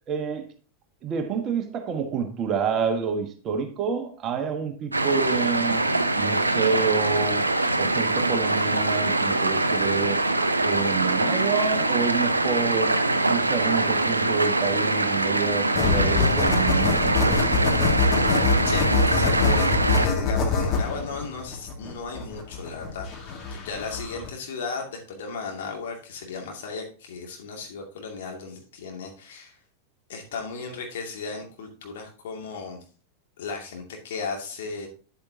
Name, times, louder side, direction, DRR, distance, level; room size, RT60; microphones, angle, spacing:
voice 1, 0.1-0.4 1.0-5.8 6.2-7.4 7.8-10.2 10.6-13.0 13.3-17.6, right 6 dB, 30° right, 7 dB, 1.3 m, -28 dB
sound 1, 4.9-20.1, right 2 dB, 80° right, 0.6 m, -23 dB
sound 2, 15.8-24.3, left 4 dB, 35° left, 2.1 m, -24 dB
voice 2, 18.7-19.7 20.0-29.6 30.1-32.8 33.4-34.9, left 4 dB, 55° left, 1 dB, 2.4 m, -35 dB
9.5 x 8.6 x 2.8 m, 0.38 s
figure-of-eight pair, 90°, 0 cm